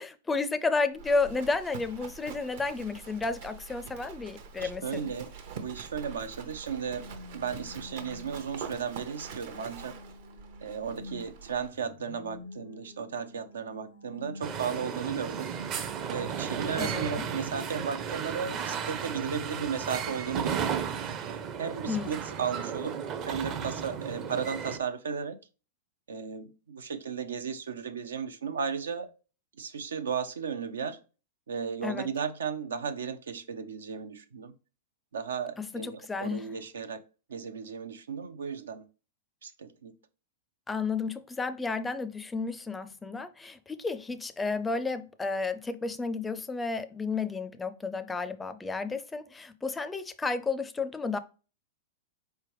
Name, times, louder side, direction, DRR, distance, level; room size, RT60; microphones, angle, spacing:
voice 1, 0.0-5.0 16.8-17.3 21.9-22.1 31.8-32.1 35.6-36.5 40.7-51.2, left 4 dB, 10° left, 0.4 m, -32 dB
Livestock farm animals working animals, 0.9-11.7, right 6 dB, 65° right, 0.8 m, -45 dB
voice 2, 4.6-7.1 7.3-9.9 10.6-15.5 16.1-20.8 21.6-23.0 23.3-25.4 26.1-29.1 29.6-31.0 31.5-34.5 35.1-37.0 37.3-38.8 39.4-40.0, right 6 dB, 85° right, 0.5 m, -35 dB
sound 1, 6.6-19.2, left 3 dB, 70° left, 0.5 m, -50 dB
sound 2, 14.4-24.8, right 7 dB, 35° right, 0.6 m, -34 dB
4.4 x 3.3 x 3.1 m
hypercardioid pair, 115°, 0 cm